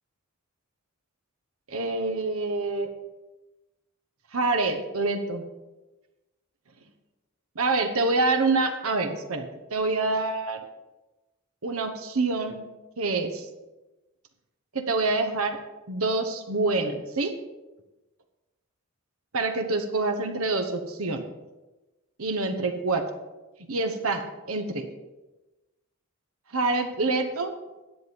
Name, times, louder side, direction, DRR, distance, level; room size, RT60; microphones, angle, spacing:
voice 1, 1.7-2.9 4.3-5.4 7.5-10.6 11.6-12.6 13.0-13.5 14.7-15.6 15.9-17.3 19.3-21.2 22.2-23.0 23.7-24.2 24.5-24.8 26.5-27.5, right 3 dB, 75° right, 6 dB, 1.1 m, -26 dB
10.5 x 8.1 x 5.3 m, 1.1 s
head